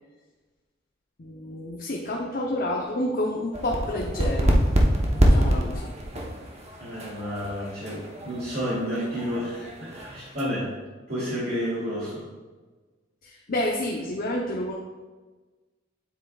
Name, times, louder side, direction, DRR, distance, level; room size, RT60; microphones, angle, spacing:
voice 1, 1.2-4.6 5.1-5.9 13.2-14.7, left 1 dB, 45° left, -1 dB, 0.8 m, -29 dB
sound 1, 3.5-10.4, equal, 35° right, 1.0 m, -25 dB
voice 2, 6.8-10.8 11.1-12.3, equal, 50° right, -9 dB, 2.5 m, -30 dB
9.2 x 8.1 x 2.4 m, 1.3 s
head